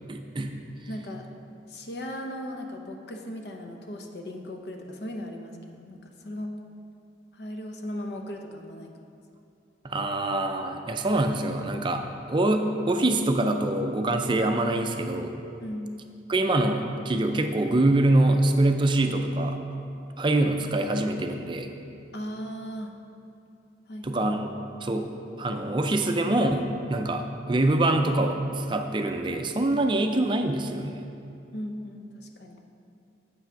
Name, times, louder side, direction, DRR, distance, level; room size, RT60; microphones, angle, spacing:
voice 1, 0.1-0.5 9.8-12.0 12.3-15.3 16.3-19.6 20.2-21.7 24.0-24.5 24.8-25.1 25.4-31.1, right 2 dB, 25° right, 5 dB, 0.4 m, -24 dB
voice 2, 0.9-1.3 1.7-6.0 6.2-6.5 7.3-8.9 15.6-15.9 22.1-22.9 23.9-24.2 31.5-32.6, equal, 65° left, 3 dB, 0.8 m, -37 dB
7.5 x 5.9 x 5.8 m, 2.7 s
head